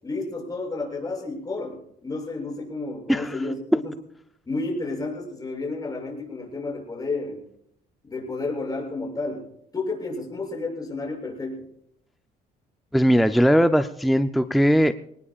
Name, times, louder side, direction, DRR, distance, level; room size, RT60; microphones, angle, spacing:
voice 1, 0.0-3.9 4.5-7.4 8.0-9.5 9.7-11.7, left 3 dB, 20° left, -2 dB, 7.3 m, -31 dB
voice 2, 12.9-14.9, equal, ahead, 9 dB, 0.5 m, -19 dB
25.0 x 19.0 x 2.4 m, 0.72 s
cardioid pair, 110°, 17 cm